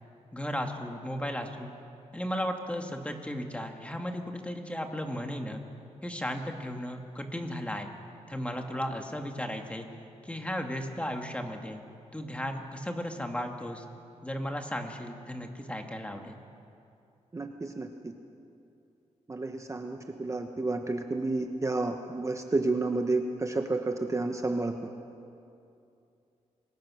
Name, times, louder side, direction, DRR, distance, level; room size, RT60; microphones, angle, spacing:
voice 1, 0.3-1.7 2.1-5.6 6.0-7.9 8.3-9.9 10.2-11.8 12.1-13.8 14.2-16.4, equal, 10° left, 3 dB, 2.3 m, -35 dB
voice 2, 17.3-18.1 19.3-24.7, right 2 dB, 25° right, 5 dB, 1.2 m, -30 dB
26.5 x 20.5 x 6.4 m, 2.6 s
cardioid pair, 90°, 12 cm